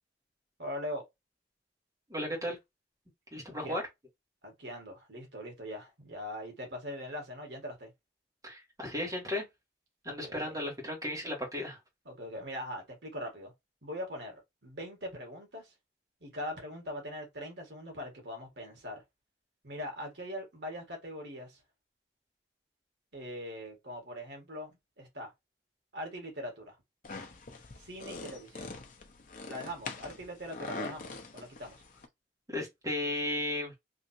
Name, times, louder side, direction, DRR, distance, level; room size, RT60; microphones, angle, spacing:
voice 1, 0.6-1.1 3.6-3.8 4.4-7.9 10.1-10.6 12.1-13.5 13.8-15.7 16.2-19.0 19.6-21.6 23.1-25.3 25.9-26.8 27.8-28.8 29.5-31.8, equal, 75° right, 1.7 m, -41 dB
voice 2, 2.1-2.6 3.3-3.8 8.4-9.4 10.0-11.8 32.5-33.7, left 1 dB, 20° right, 1.6 m, -35 dB
sound 1, 27.0-32.1, left 3 dB, 50° left, 0.7 m, -43 dB
3.6 x 2.8 x 2.7 m
head